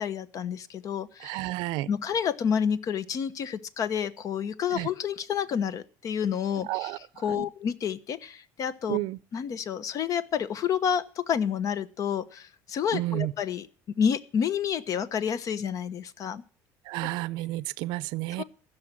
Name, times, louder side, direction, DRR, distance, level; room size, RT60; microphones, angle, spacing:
voice 1, 0.0-1.5 1.9-6.9 7.2-9.0 9.3-16.4 18.4-18.5, left 8 dB, 45° left, 1.0 m, -29 dB
voice 2, 1.2-1.9 4.7-4.9 6.7-7.0 7.3-7.5 8.9-9.2 12.9-13.3 16.9-18.4, right 18 dB, 75° right, 0.6 m, -31 dB
15.5 x 6.6 x 7.4 m
cardioid pair, 115°, 8 cm